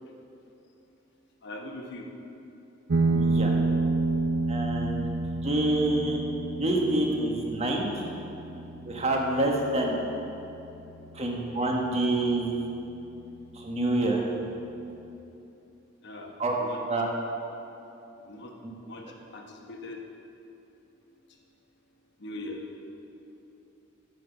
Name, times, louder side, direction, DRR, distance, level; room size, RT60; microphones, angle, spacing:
voice 1, 1.4-2.0 10.9-11.0 16.0-16.3 16.6-16.8 18.3-18.5 18.9-19.0 19.3-20.0 22.2-22.6, left 2 dB, 60° left, 2 dB, 1.1 m, -40 dB
sound 1, 2.9-11.9, right 3 dB, 85° right, 0.7 m, -30 dB
voice 2, 3.1-3.5 4.5-5.1 5.4-6.2 6.5-7.9 8.8-10.0 11.1-12.5 13.5-14.2 16.4-16.5 16.9-17.1, right 2 dB, 30° right, 0 dB, 1.2 m, -27 dB
9.1 x 5.9 x 7.0 m, 2.8 s
head